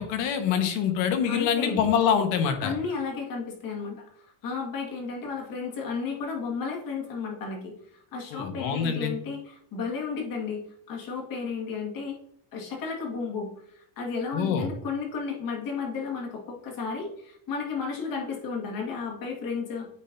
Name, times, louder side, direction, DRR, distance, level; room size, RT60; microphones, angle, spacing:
voice 1, 0.0-2.7 8.3-9.1 14.3-14.7, left 7 dB, 65° left, 6 dB, 1.3 m, -25 dB
voice 2, 1.3-1.8 2.6-12.2 12.5-19.9, left 5 dB, 45° left, 0 dB, 1.9 m, -33 dB
9.0 x 4.3 x 2.6 m, 0.69 s
cardioid pair, 140°, 47 cm